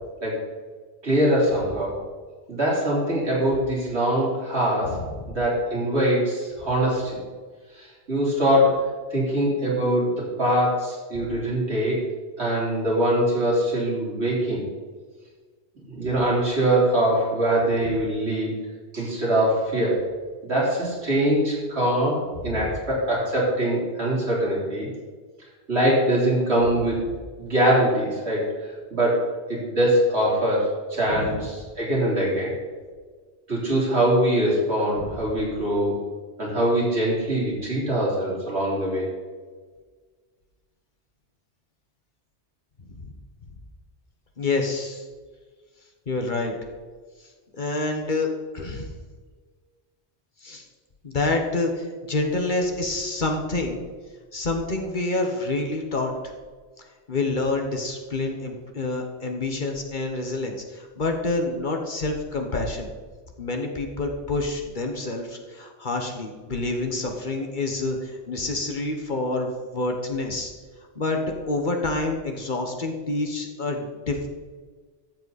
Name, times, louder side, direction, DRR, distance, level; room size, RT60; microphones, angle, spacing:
voice 1, 1.0-2.0 2.5-5.0 5.3-7.2 7.7-12.1 12.4-14.7 15.9-18.5 18.9-20.0 20.4-24.9 25.7-27.0 27.4-32.5 33.5-36.0 36.4-39.1, right 1 dB, 75° right, -6 dB, 4.1 m, -23 dB
voice 2, 4.8-5.3 11.1-11.3 22.4-22.7 31.1-31.4 42.8-43.1 44.4-45.0 46.1-46.5 47.6-48.3 48.5-48.9 50.4-50.6 51.0-53.8 54.3-56.1 57.1-62.9 63.4-70.5 70.9-74.3, left 2 dB, 45° left, 3 dB, 1.3 m, -27 dB
13.5 x 7.8 x 4.2 m, 1.5 s
omnidirectional pair, 1.1 m